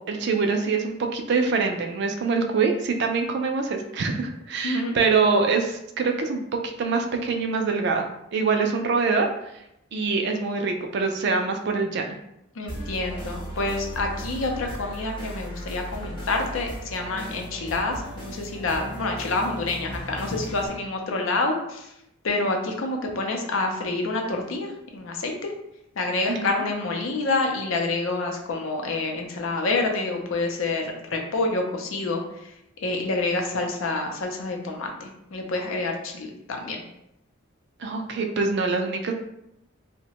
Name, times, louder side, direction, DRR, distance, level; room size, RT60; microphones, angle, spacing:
voice 1, 0.1-6.4 6.8-8.1 8.3-9.3 9.9-12.2 26.3-26.7 37.8-39.1, right 4 dB, 55° right, 4 dB, 0.3 m, -24 dB
voice 2, 4.6-4.9 12.6-21.9 22.2-25.5 26.0-32.5 32.8-36.8, left 2 dB, 70° left, 2 dB, 0.5 m, -27 dB
sound 1, 12.7-20.7, equal, 25° left, 0.8 m, -37 dB
2.8 x 2.1 x 2.8 m, 0.82 s
head